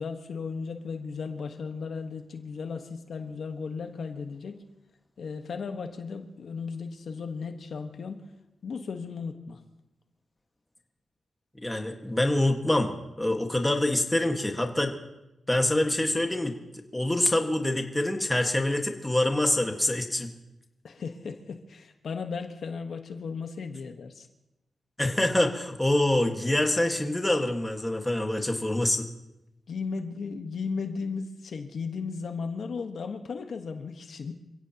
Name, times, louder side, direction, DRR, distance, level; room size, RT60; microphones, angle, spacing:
voice 1, 0.0-4.6 5.2-8.2 8.6-9.6 20.8-24.3 29.7-34.3, left 5 dB, 60° left, 6 dB, 1.3 m, -35 dB
voice 2, 11.6-14.9 15.5-16.6 16.9-20.3 25.0-29.1, left 1 dB, 10° left, 3 dB, 1.6 m, -25 dB
27.5 x 16.5 x 2.9 m, 0.90 s
wide cardioid pair, 120°, 0 cm